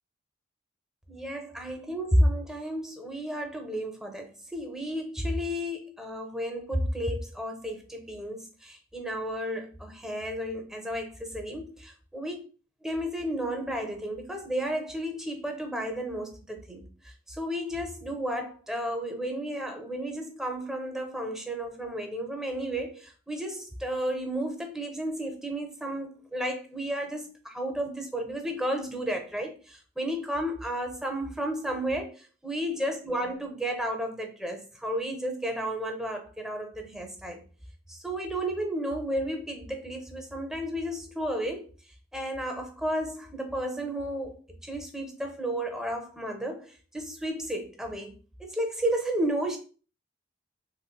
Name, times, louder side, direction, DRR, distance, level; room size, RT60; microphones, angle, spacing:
voice 1, 1.1-12.4 12.8-16.8 17.3-37.4 37.9-41.7 42.1-44.3 44.6-48.1 48.4-49.6, equal, 5° right, 0.5 m, -32 dB
3.1 x 3.0 x 2.2 m
head